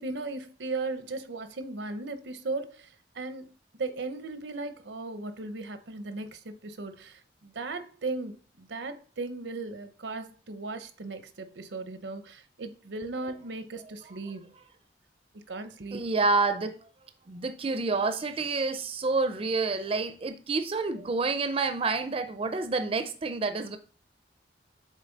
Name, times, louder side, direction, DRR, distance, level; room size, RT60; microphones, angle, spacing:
voice 1, 0.0-14.5 15.3-16.0, right 3 dB, 80° right, 0.7 m, -37 dB
voice 2, 15.9-16.8 17.3-23.8, right 3 dB, 35° right, 0.5 m, -28 dB
7.4 x 3.8 x 3.9 m
head